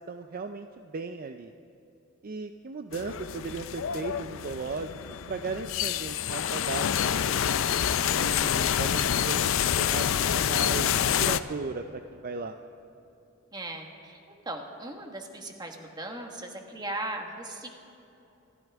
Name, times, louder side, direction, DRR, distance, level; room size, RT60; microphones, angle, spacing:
voice 1, 0.0-1.5 2.2-4.9 5.3-7.4 8.1-12.6, right 4 dB, 45° right, 7 dB, 0.5 m, -36 dB
sound 1, 2.9-11.4, left 9 dB, 70° left, 0.5 m, -27 dB
voice 2, 13.5-14.2 14.4-17.7, right 1 dB, 20° right, 3 dB, 1.4 m, -38 dB
26.5 x 12.0 x 3.5 m, 2.9 s
head